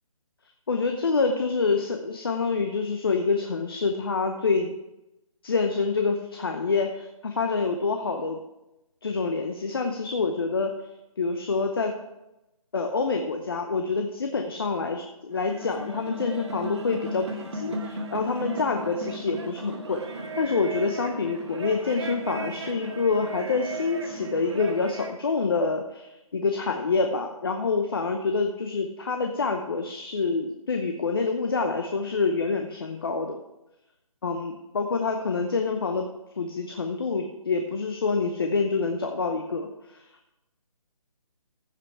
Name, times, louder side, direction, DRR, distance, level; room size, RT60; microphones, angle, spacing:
voice 1, 0.7-4.7 5.4-8.4 9.0-10.7 11.2-11.9 12.7-33.4 34.2-36.1 36.4-40.0, left 4 dB, 40° left, 4 dB, 0.8 m, -27 dB
sound 1, 15.3-25.2, right 1 dB, 50° right, 1.5 m, -36 dB
15.0 x 5.5 x 4.7 m, 0.94 s
hypercardioid pair, 170°, 19 cm